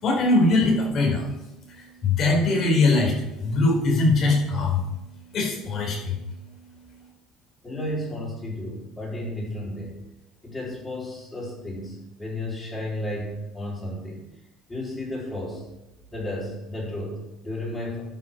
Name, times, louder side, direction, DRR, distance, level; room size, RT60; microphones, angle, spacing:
voice 1, 0.0-1.2 1.7-3.1 3.4-4.8 5.3-6.2, left 2 dB, 45° left, -2 dB, 4.4 m, -21 dB
voice 2, 7.6-10.0 10.4-14.3 14.7-15.6 16.1-18.0, left 1 dB, 15° left, -4 dB, 4.2 m, -33 dB
11.5 x 6.2 x 5.7 m, 0.94 s
cardioid pair, 135°, 0 cm